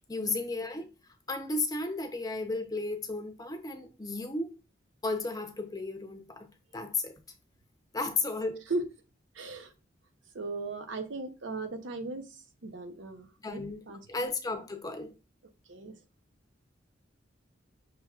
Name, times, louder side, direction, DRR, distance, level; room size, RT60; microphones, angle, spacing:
voice 1, 0.1-0.9 1.3-4.5 5.0-7.1 7.9-8.6 13.4-15.1, left 3 dB, 20° left, 0.6 m, -34 dB
voice 2, 9.3-9.7 10.3-12.2 12.6-14.3 15.7-15.9, right 3 dB, 80° right, 0.8 m, -37 dB
6.0 x 3.2 x 2.4 m
head